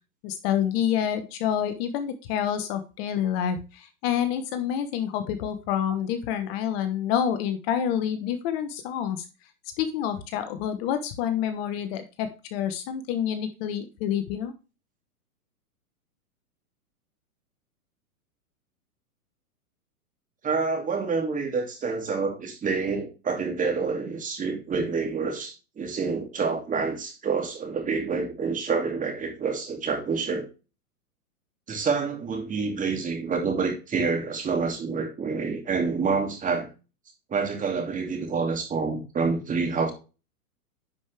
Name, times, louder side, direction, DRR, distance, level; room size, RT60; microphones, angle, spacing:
voice 1, 0.2-9.2 9.8-14.5, left 9 dB, 40° left, 1.2 m, -28 dB
voice 2, 20.4-30.5 31.7-36.7 37.3-39.9, right 4 dB, 15° right, 2.5 m, -27 dB
10.5 x 5.3 x 3.4 m
hypercardioid pair, 130°, 45 cm